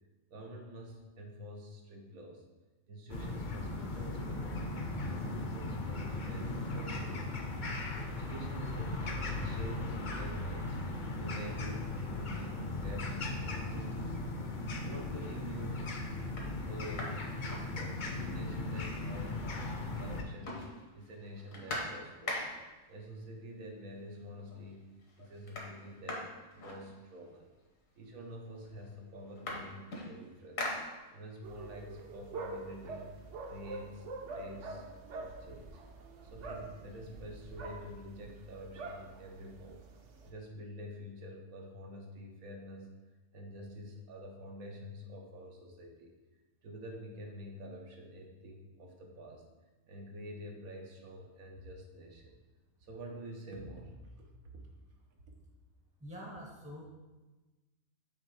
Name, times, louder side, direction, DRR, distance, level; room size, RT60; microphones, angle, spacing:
voice 1, 0.3-2.4 2.9-4.6 5.0-7.5 8.1-10.8 11.2-14.2 14.8-15.9 16.6-22.5 22.9-26.3 26.5-27.5 28.0-30.7 31.1-33.1 33.5-34.8 35.1-35.8 36.2-39.8 40.2-42.9 43.3-46.1 46.6-49.4 49.9-52.4 52.8-54.6, equal, 85° right, 1 dB, 1.4 m, -48 dB
sound 1, 3.1-20.2, left 2 dB, 45° left, 0.7 m, -37 dB
sound 2, 16.4-18.3 18.6-18.7 19.0-19.8 20.1-22.8 23.8-23.9 24.3-24.7 25.0-27.4 28.2-28.3 28.6-31.4 31.9-33.6, left 2 dB, 70° left, 1.5 m, -43 dB
sound 3, 31.4-40.3, right 3 dB, 65° right, 1.0 m, -45 dB
voice 2, 56.0-56.8, equal, 15° right, -1 dB, 0.6 m, -45 dB
7.2 x 3.3 x 4.7 m, 1.2 s
omnidirectional pair, 1.4 m